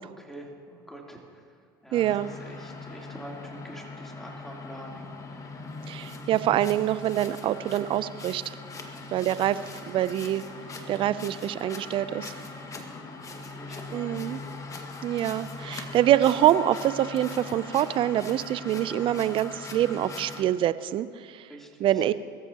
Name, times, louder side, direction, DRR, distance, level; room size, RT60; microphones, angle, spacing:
voice 1, 0.0-1.5 1.8-5.4 8.8-9.4 12.7-13.1 13.4-14.3 14.6-14.8 21.5-22.1, right 1 dB, 5° left, -1 dB, 3.2 m, -46 dB
sound 1, 1.9-20.4, left 3 dB, 30° left, 1.8 m, -40 dB
voice 2, 1.9-2.3 5.9-8.6 9.1-10.4 10.9-12.3 13.9-14.4 15.0-21.5 21.8-22.1, right 12 dB, 45° right, 16 dB, 0.5 m, -25 dB
23.0 x 14.0 x 3.0 m, 2.3 s
hypercardioid pair, 80°, 12 cm